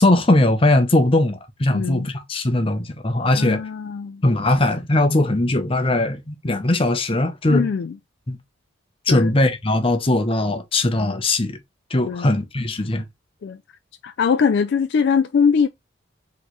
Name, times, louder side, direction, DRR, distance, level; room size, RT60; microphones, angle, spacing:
voice 1, 0.0-3.6 4.2-7.7 8.3-8.4 9.1-11.6 11.9-13.0, left 2 dB, 25° left, 0.7 m, -19 dB
voice 2, 1.7-2.1 3.3-4.2 7.5-7.9 9.1-9.3 12.1-12.3 13.4-13.6 14.0-15.7, left 6 dB, 55° left, 0.3 m, -21 dB
4.2 x 3.1 x 3.0 m
head